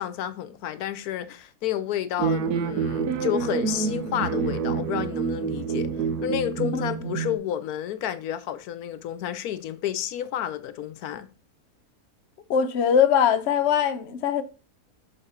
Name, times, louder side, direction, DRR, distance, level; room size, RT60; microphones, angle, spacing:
voice 1, 0.0-5.9 6.2-11.3, left 11 dB, 80° left, 1.1 m, -30 dB
sound 1, 2.2-7.4, right 6 dB, 85° right, 1.3 m, -27 dB
voice 2, 12.5-14.4, left 8 dB, 55° left, 0.8 m, -21 dB
6.9 x 4.9 x 4.2 m
omnidirectional pair, 1.6 m